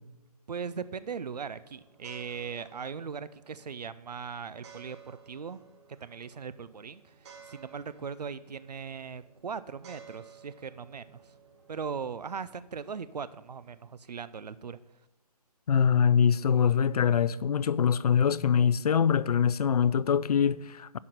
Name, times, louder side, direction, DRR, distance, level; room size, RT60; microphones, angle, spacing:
voice 1, 0.5-5.6 6.0-11.3 11.7-14.8, right 6 dB, 90° right, 0.5 m, -39 dB
sound 1, 0.6-13.8, right 6 dB, 45° right, 2.3 m, -56 dB
voice 2, 15.7-21.0, left 7 dB, 75° left, 0.5 m, -24 dB
11.0 x 4.3 x 7.8 m
hypercardioid pair, 145°, 20 cm